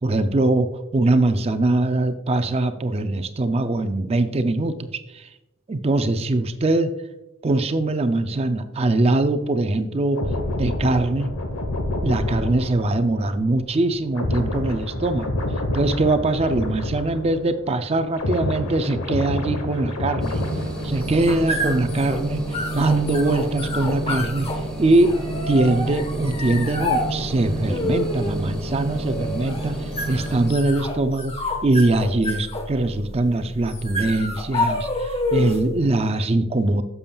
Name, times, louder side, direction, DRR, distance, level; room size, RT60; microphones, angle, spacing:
voice 1, 0.0-4.8 5.1-5.3 5.7-6.9 7.4-10.2 10.6-11.3 12.0-15.3 15.7-20.4 20.8-25.2 25.5-31.3 31.6-36.8, right 2 dB, 30° right, 9 dB, 0.4 m, -22 dB
sound 1, 10.1-17.6 17.9-21.6 21.9-22.2, left 1 dB, 80° left, 1.0 m, -28 dB
sound 2, 20.2-30.5, right 2 dB, 5° left, 1.6 m, -30 dB
sound 3, 20.8-35.8, left 2 dB, 25° left, 0.9 m, -29 dB
10.5 x 7.0 x 2.3 m, 0.98 s
head